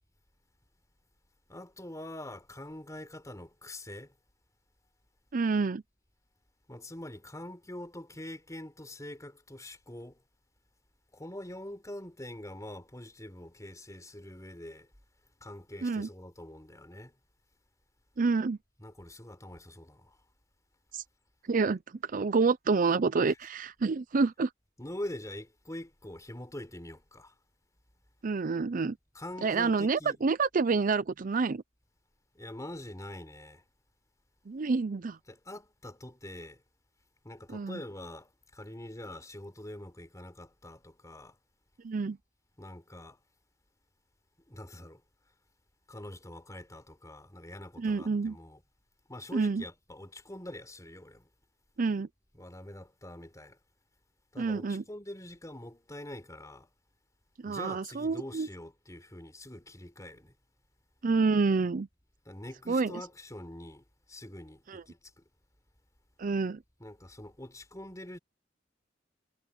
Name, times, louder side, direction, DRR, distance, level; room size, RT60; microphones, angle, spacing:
voice 1, 1.5-4.2 6.7-10.2 11.1-14.9 15.4-17.2 18.8-20.2 24.8-27.3 29.1-30.2 32.3-33.6 35.3-36.6 37.2-41.4 42.6-43.2 44.5-45.0 45.9-48.6 49.1-51.3 52.3-53.6 54.3-56.7 57.4-60.4 62.3-65.2 66.8-68.2, left 1 dB, 20° left, 4.1 m, -44 dB
voice 2, 5.3-5.8 15.8-16.1 18.2-18.6 20.9-21.0 21.5-24.5 28.2-29.0 29.4-31.6 34.5-35.2 37.5-37.8 41.8-42.2 47.8-48.4 49.3-49.6 51.8-52.1 54.4-54.8 57.4-58.5 61.0-61.9 62.7-62.9 64.7-64.8 66.2-66.6, right 4 dB, 45° right, 0.5 m, -28 dB
head